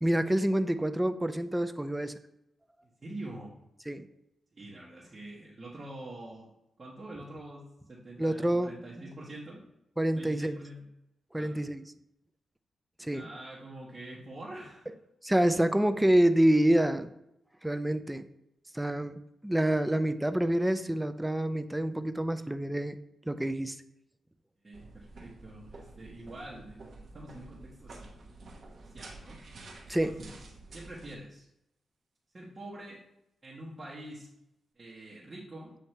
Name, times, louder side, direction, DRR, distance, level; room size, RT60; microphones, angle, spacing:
voice 1, 0.0-2.2 3.9-4.1 8.2-8.7 10.0-10.6 11.3-11.8 13.0-13.3 15.2-17.1 17.6-18.2 18.7-23.0 23.3-23.8 29.9-30.2, right 1 dB, 10° right, 11 dB, 0.4 m, -27 dB
voice 2, 3.0-3.5 4.5-6.5 6.8-9.6 10.2-10.8 11.4-11.6 13.1-14.9 24.6-28.2 28.9-29.4 30.0-30.4 30.7-31.5 32.3-33.0 33.4-34.3 34.7-35.7, right 1 dB, 30° right, -6 dB, 1.2 m, -45 dB
sound 1, 24.7-31.2, right 2 dB, 55° right, 1.0 m, -49 dB
8.0 x 2.8 x 4.3 m, 0.85 s
cardioid pair, 100°, 0 cm